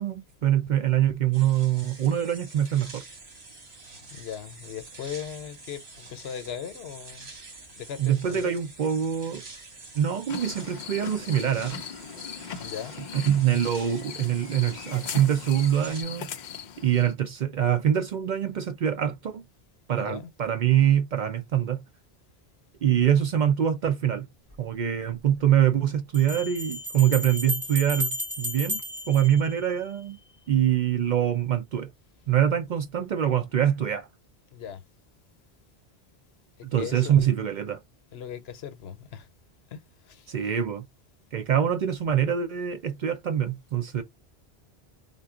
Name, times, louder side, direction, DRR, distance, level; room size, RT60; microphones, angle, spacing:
voice 1, 0.0-3.0 8.0-9.4 9.9-11.8 13.1-16.3 16.8-19.4 19.9-21.8 22.8-24.3 24.6-28.8 29.1-30.2 30.5-31.9 32.3-34.1 36.6-37.8 40.3-40.8 41.3-44.0, right 10 dB, 55° right, 0.5 m, -24 dB
sound 1, 1.3-16.0, right 3 dB, 75° right, 1.4 m, -47 dB
voice 2, 4.1-7.3 7.8-8.5 12.5-12.9 20.0-20.3 34.5-34.8 36.8-37.3 38.1-39.3 39.7-39.8 40.1-40.3, left 9 dB, 75° left, 0.9 m, -38 dB
sound 2, 10.3-17.1, left 7 dB, 55° left, 0.5 m, -39 dB
sound 3, 24.5-24.6 26.1-30.1, left 1 dB, 20° right, 1.2 m, -33 dB
3.8 x 2.2 x 3.6 m
omnidirectional pair, 1.1 m